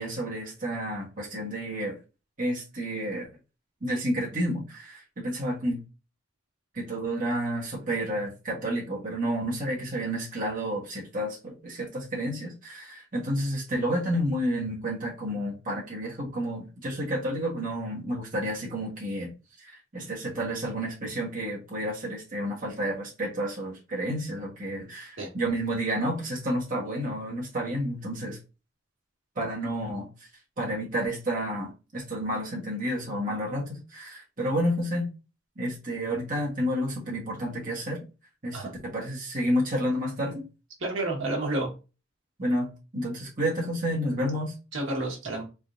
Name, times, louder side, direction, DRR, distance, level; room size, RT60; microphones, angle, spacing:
voice 1, 0.0-2.0 2.4-3.3 3.8-5.8 6.7-19.3 19.6-28.4 29.3-30.3 30.6-35.1 35.5-38.0 38.4-40.4 42.4-44.5, equal, 45° right, -4 dB, 1.5 m, -30 dB
voice 2, 40.8-41.7 44.7-45.4, right 2 dB, 75° right, -1 dB, 1.7 m, -30 dB
4.1 x 3.7 x 2.6 m, 0.30 s
head